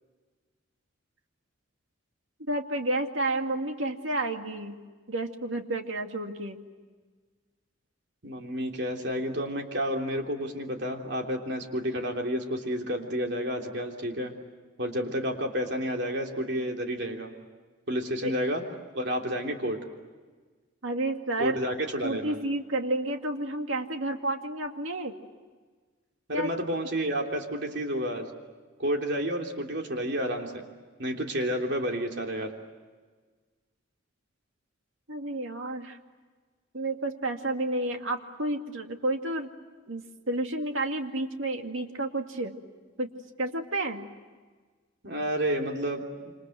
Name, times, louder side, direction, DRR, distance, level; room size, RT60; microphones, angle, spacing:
voice 1, 2.5-4.8 5.1-6.6 18.2-18.3 20.8-21.6 22.0-25.2 26.3-26.5 35.1-36.0 36.7-39.5 39.9-42.6 43.0-43.1 43.4-44.1, right 2 dB, 75° right, 4 dB, 2.3 m, -31 dB
voice 2, 8.2-14.3 14.8-17.3 17.9-18.6 18.9-19.8 21.4-22.4 26.3-28.3 28.8-30.6 31.0-32.5 45.0-46.0, equal, 55° right, 2 dB, 3.3 m, -30 dB
27.5 x 27.5 x 7.9 m, 1.4 s
head